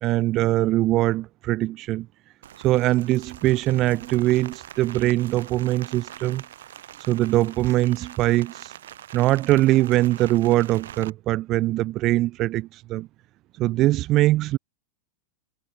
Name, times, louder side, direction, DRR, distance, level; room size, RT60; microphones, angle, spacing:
voice 1, 0.0-2.1 2.6-6.4 7.0-8.7 9.1-13.1 13.6-14.6, right 16 dB, 35° right, 0.5 m, -22 dB
Rain, 2.4-11.1, right 11 dB, 60° right, 7.6 m, -43 dB
figure-of-eight pair, 90°, 0 cm